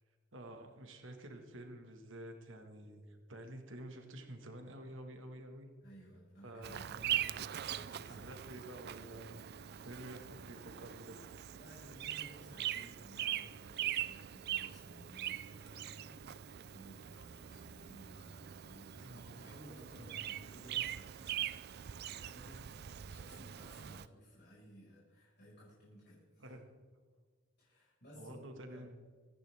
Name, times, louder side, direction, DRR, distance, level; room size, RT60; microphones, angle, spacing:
voice 1, 0.3-5.7 6.4-7.3 8.1-9.4 9.8-11.2 19.0-19.3 26.4-26.6 28.1-29.0, right 1 dB, 70° right, 4 dB, 1.8 m, -50 dB
voice 2, 5.8-7.0 7.5-8.3 11.5-21.4 22.1-22.6 23.0-26.5 27.6-28.5 28.7-28.9, equal, 55° left, -8 dB, 5.3 m, -57 dB
Bird vocalization bird call bird song, 6.6-24.1, right 11 dB, 55° right, 0.4 m, -42 dB
25.0 x 10.5 x 3.5 m, 1.5 s
head